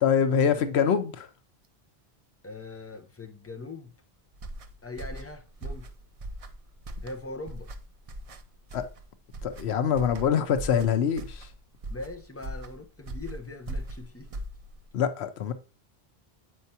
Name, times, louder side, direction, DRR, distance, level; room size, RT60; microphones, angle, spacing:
voice 1, 0.0-1.3 8.7-8.9 9.4-11.5 14.9-15.5, left 7 dB, 85° left, 1.0 m, -24 dB
voice 2, 2.4-3.9 4.8-5.9 7.0-7.7 11.9-14.4, left 2 dB, 15° left, 0.7 m, -41 dB
sound 1, 4.3-14.9, right 1 dB, 45° right, 0.5 m, -40 dB
7.4 x 4.6 x 2.7 m
omnidirectional pair, 1.1 m